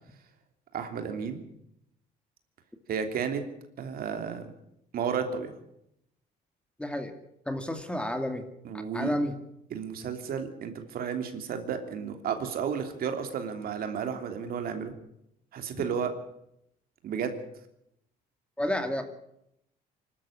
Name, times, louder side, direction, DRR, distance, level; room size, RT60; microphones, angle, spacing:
voice 1, 0.7-1.4 2.9-3.4 3.8-4.5 4.9-5.5 8.6-9.1 9.7-14.9 15.5-16.1 17.0-17.4, right 7 dB, 60° right, 6 dB, 3.1 m, -32 dB
voice 2, 6.8-7.1 7.5-8.5 8.9-9.3 18.6-19.0, left 1 dB, 5° left, 7 dB, 2.3 m, -30 dB
24.5 x 13.0 x 8.7 m, 0.79 s
cardioid pair, 110°, 17 cm